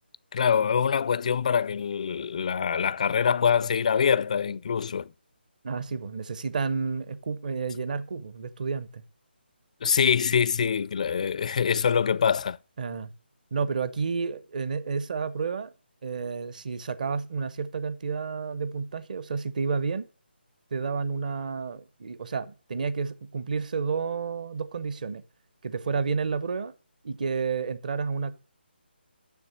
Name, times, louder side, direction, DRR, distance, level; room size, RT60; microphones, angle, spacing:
voice 1, 0.3-5.1 9.8-12.6, left 7 dB, 40° left, 0.4 m, -24 dB
voice 2, 5.6-9.0 12.8-13.1 13.5-15.7 16.0-20.1 20.7-25.2 25.6-26.7 27.0-28.3, right 5 dB, 45° right, 0.9 m, -30 dB
7.0 x 6.6 x 7.3 m
figure-of-eight pair, 160°, 6 cm